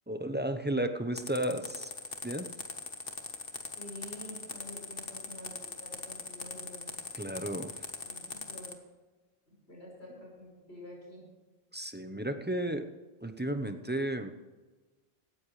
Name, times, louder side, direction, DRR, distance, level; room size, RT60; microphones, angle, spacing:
voice 1, 0.1-1.9 2.2-2.5 7.1-7.7 11.7-12.9 13.2-14.3, right 1 dB, 10° right, 8 dB, 0.8 m, -33 dB
sound 1, 1.2-8.7, left 4 dB, 65° left, 1.6 m, -40 dB
voice 2, 3.7-6.9 8.0-8.7 9.7-11.3, left 1 dB, 85° left, -3 dB, 5.9 m, -48 dB
17.5 x 14.0 x 3.3 m, 1.2 s
omnidirectional pair, 1.0 m